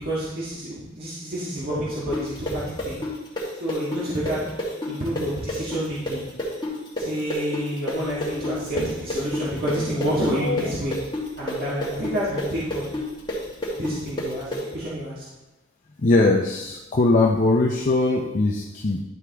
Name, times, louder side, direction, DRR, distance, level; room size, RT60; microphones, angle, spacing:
voice 1, 0.0-3.0 3.6-4.4 4.9-6.2 7.0-11.0 11.4-12.9 13.8-15.2, equal, 50° right, -8 dB, 1.6 m, -29 dB
sound 1, 2.1-9.8 10.0-14.6, left 1 dB, 25° left, 1.7 m, -29 dB
sound 2, 7.9-14.5, left 2 dB, 65° left, 1.3 m, -37 dB
voice 2, 16.0-19.0, left 2 dB, 40° left, -1 dB, 0.6 m, -20 dB
11.0 x 4.8 x 3.4 m, 1.1 s
head